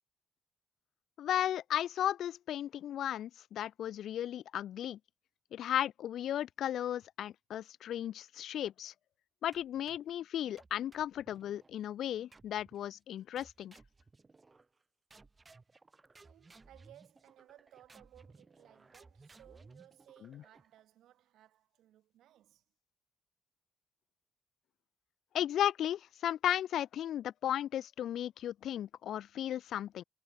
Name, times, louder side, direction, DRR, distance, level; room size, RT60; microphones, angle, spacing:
voice 1, 1.2-5.0 5.5-8.9 9.4-13.7 20.3-20.4 25.3-30.0, left 11 dB, 70° left, 0.4 m, -35 dB
sound 1, 9.5-10.2 10.6-11.7 12.3-12.9 13.4-14.8 15.1-20.8, right 3 dB, 25° right, 3.6 m, -60 dB
voice 2, 16.2-22.6, right 12 dB, 80° right, 4.2 m, -61 dB
cardioid pair, 90°, 0 cm